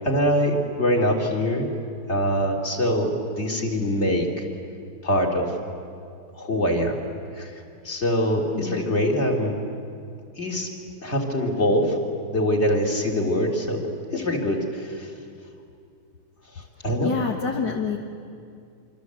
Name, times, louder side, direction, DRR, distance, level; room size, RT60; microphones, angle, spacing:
voice 1, 0.0-1.7 2.1-4.4 5.0-5.6 6.3-7.0 7.3-9.6 10.3-10.7 11.0-12.0 12.3-15.1 16.5-17.1, equal, 30° left, 1 dB, 3.2 m, -24 dB
voice 2, 17.0-18.0, left 5 dB, 55° left, 1 dB, 2.0 m, -27 dB
26.5 x 25.0 x 8.1 m, 2.4 s
omnidirectional pair, 2.3 m